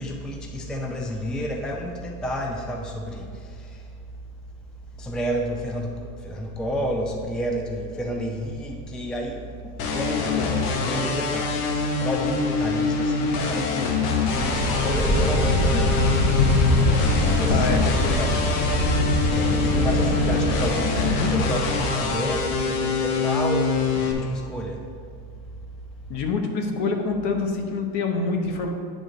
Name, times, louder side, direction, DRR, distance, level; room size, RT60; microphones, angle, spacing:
voice 1, 0.0-3.5 5.0-5.9 6.2-16.0 17.3-17.7 19.3-24.8, equal, ahead, 1 dB, 0.4 m, -30 dB
sound 1, 9.8-24.1, left 4 dB, 85° left, 1.1 m, -25 dB
sound 2, 14.3-22.9, left 1 dB, 35° left, 1.9 m, -23 dB
voice 2, 17.5-18.5 26.1-28.7, left 4 dB, 60° left, 4 dB, 1.1 m, -26 dB
8.2 x 3.9 x 5.0 m, 2.2 s
supercardioid pair, 100°, 45 cm